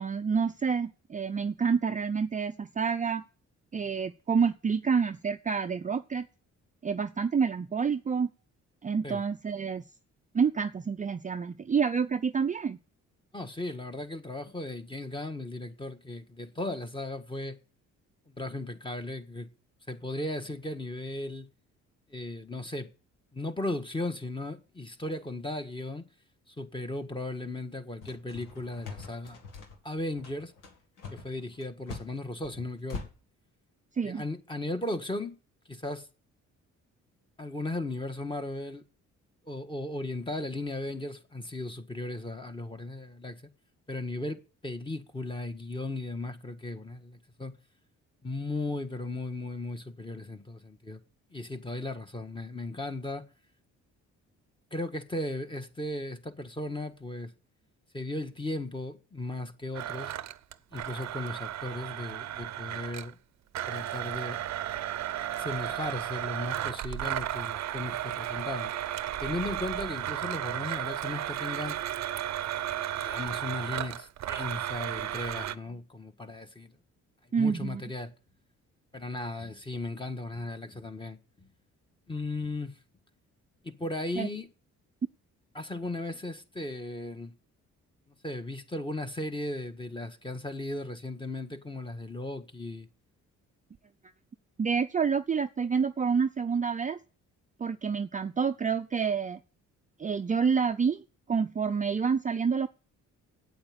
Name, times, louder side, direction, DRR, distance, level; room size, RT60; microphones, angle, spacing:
voice 1, 0.0-3.2 3.7-6.3 6.8-8.3 8.8-9.8 10.3-12.8 34.0-34.2 77.3-77.8 84.2-84.3 94.6-97.0 97.6-99.4 100.0-102.7, right 6 dB, 25° right, 0.5 m, -28 dB
voice 2, 13.3-17.6 18.3-19.5 19.9-21.5 22.1-22.9 23.3-26.0 26.5-29.4 29.8-30.5 31.1-33.1 34.0-35.4 35.7-36.1 37.4-38.8 39.5-43.4 43.9-47.5 48.2-51.0 51.3-53.2 54.7-57.3 57.9-60.1 60.7-63.2 63.7-64.4 65.4-68.7 69.2-71.8 73.0-76.7 77.4-78.1 78.9-81.5 82.1-82.7 83.6-84.5 85.5-87.3 88.2-92.9, left 2 dB, 15° left, 1.6 m, -36 dB
sound 1, 28.0-33.1, left 4 dB, 90° left, 2.2 m, -42 dB
Domestic sounds home sounds, 59.7-63.1 63.5-75.6, right 12 dB, 60° right, 0.7 m, -34 dB
8.8 x 8.7 x 7.6 m
cardioid pair, 90°, 30 cm